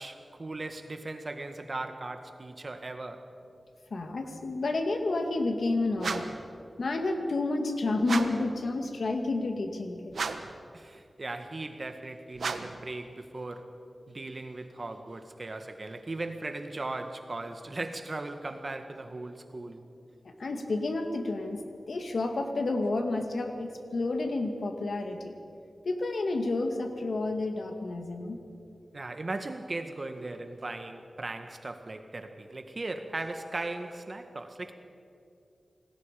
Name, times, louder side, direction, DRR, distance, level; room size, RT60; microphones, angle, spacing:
voice 1, 0.0-3.3 10.7-13.7 14.1-19.8 28.9-34.7, right 2 dB, 45° right, 7 dB, 1.8 m, -38 dB
voice 2, 3.9-6.3 6.8-10.2 20.4-21.6 21.9-25.3 25.9-28.4, left 2 dB, 75° left, 5 dB, 2.2 m, -30 dB
sound 1, 6.0-6.5 8.0-8.5 10.1-10.6 12.4-12.9, right 4 dB, 85° right, 1.2 m, -34 dB
28.5 x 19.5 x 5.3 m, 2.7 s
wide cardioid pair, 70°, 0 cm